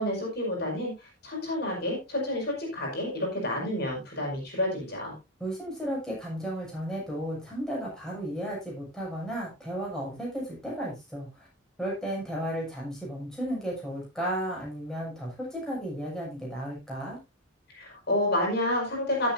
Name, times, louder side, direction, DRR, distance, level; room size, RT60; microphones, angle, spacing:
voice 1, 0.0-5.1 17.7-19.3, left 1 dB, 50° left, -2 dB, 5.5 m, -29 dB
voice 2, 5.4-11.5 11.8-17.2, equal, 5° left, -4 dB, 6.8 m, -34 dB
17.5 x 8.1 x 2.7 m, 0.24 s
head